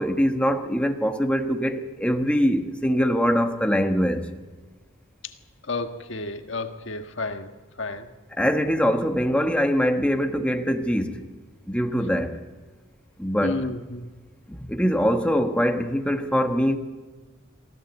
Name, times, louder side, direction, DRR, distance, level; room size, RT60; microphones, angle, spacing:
voice 1, 0.0-4.3 8.3-11.2 11.7-12.4 13.2-13.7 14.5-16.8, equal, 5° left, 1.2 m, -23 dB
voice 2, 5.7-7.5 7.8-8.1 13.4-14.1, left 2 dB, 60° left, 1.5 m, -31 dB
23.0 x 15.0 x 8.1 m
head